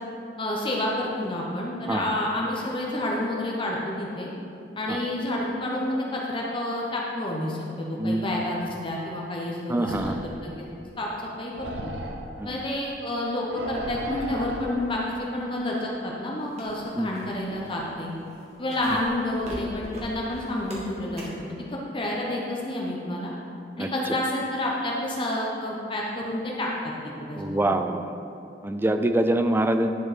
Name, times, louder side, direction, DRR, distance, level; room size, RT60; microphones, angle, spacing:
voice 1, 0.4-4.3 4.8-10.1 10.4-10.6 11.0-11.1 11.4-11.9 12.4-18.1 18.6-23.3 23.8-26.9 27.3-27.8, left 1 dB, 30° left, -3 dB, 0.9 m, -29 dB
voice 2, 9.7-10.2 12.4-12.5 16.9-17.1 23.8-24.2 27.4-28.1 28.6-29.9, right 1 dB, 10° right, 7 dB, 0.3 m, -25 dB
sound 1, 9.8-10.4 11.5-12.3 13.5-14.8, right 2 dB, 85° right, 0.8 m, -35 dB
sound 2, 16.5-21.5, equal, 40° right, 1.7 m, -42 dB
10.5 x 4.6 x 5.0 m, 2.7 s
head